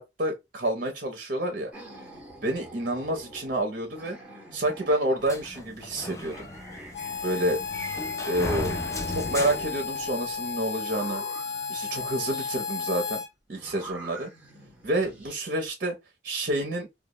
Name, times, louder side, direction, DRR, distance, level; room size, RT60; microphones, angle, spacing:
voice 1, 0.0-1.7 2.4-4.2 4.5-6.5 7.2-7.6 8.3-8.8 9.1-11.2 11.7-13.2 13.5-14.3 14.8-16.0 16.2-16.9, right 1 dB, 50° right, 0.6 m, -28 dB
sound 1, 1.7-5.6 6.0-8.0 8.5-10.2 10.8-12.6 13.5-15.4, right 1 dB, 5° right, 0.9 m, -46 dB
sound 2, 5.3-10.5, left 1 dB, 15° left, 0.4 m, -36 dB
Harmonica, 6.9-13.3, left 6 dB, 75° left, 0.6 m, -33 dB
2.2 x 2.1 x 2.6 m
head